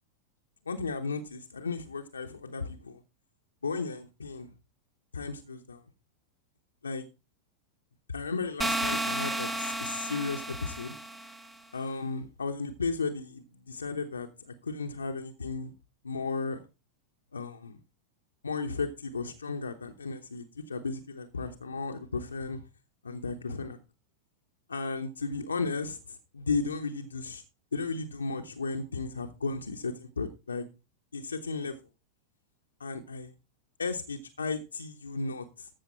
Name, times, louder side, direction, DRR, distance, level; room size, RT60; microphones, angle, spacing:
voice 1, 0.7-3.0 3.6-4.5 5.1-5.8 6.8-7.1 8.1-11.0 11.7-15.7 16.0-16.6 17.3-17.8 18.4-22.6 23.0-23.8 24.7-27.4 27.7-30.6 31.1-31.8 32.8-33.3 33.8-35.7, left 4 dB, 75° left, 0.9 m, -34 dB
sound 1, 8.6-11.5, right 1 dB, 10° right, 1.2 m, -32 dB
14.0 x 6.7 x 4.3 m
figure-of-eight pair, 90°, 0 cm